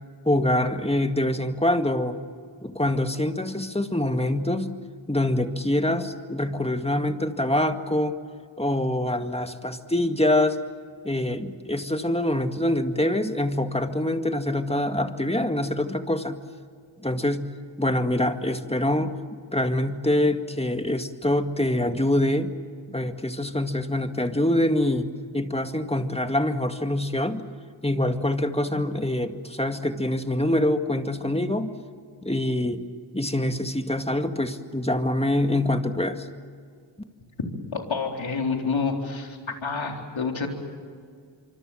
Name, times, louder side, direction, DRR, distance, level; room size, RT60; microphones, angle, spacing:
voice 1, 0.3-2.2 2.6-4.8 5.1-8.2 8.6-10.6 11.0-16.4 17.0-17.5 17.8-19.1 19.5-22.5 22.9-25.1 25.3-27.4 27.8-31.7 32.2-32.8 33.1-36.3, left 1 dB, 15° left, 7 dB, 2.0 m, -25 dB
voice 2, 37.7-40.5, left 4 dB, 75° left, 2 dB, 4.0 m, -28 dB
25.5 x 25.5 x 7.6 m, 2.1 s
cardioid pair, 45°, 47 cm